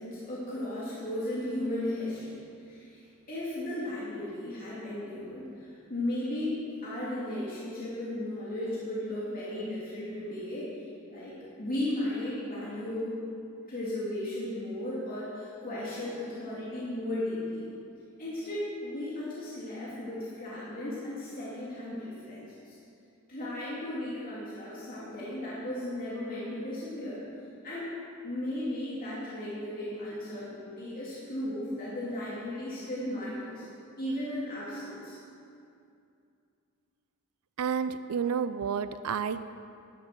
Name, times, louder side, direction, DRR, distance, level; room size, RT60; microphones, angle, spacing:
voice 1, 0.0-3.0 3.3-13.1 13.7-17.7 18.2-22.8 23.3-27.2 27.6-27.8 28.2-33.6 34.0-35.2, left 1 dB, 40° left, -8 dB, 2.6 m, -35 dB
voice 2, 37.6-39.5, right 7 dB, 75° right, 12 dB, 0.4 m, -30 dB
12.0 x 9.5 x 6.7 m, 2.6 s
head